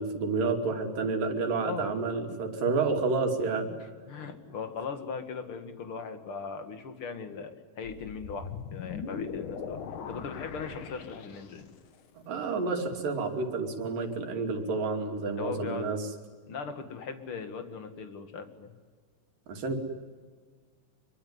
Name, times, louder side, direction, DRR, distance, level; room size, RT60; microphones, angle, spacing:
voice 1, 0.0-3.7 12.3-16.0 19.5-19.8, right 4 dB, 90° right, 3 dB, 4.5 m, -29 dB
voice 2, 1.6-1.9 4.1-7.5 7.8-9.8 10.1-11.7 15.4-15.9 16.5-18.7, left 5 dB, 45° left, 7 dB, 2.6 m, -39 dB
sound 1, 7.8-11.8, left 6 dB, 70° left, 3.2 m, -40 dB
25.0 x 23.5 x 9.7 m, 1.5 s
omnidirectional pair, 3.8 m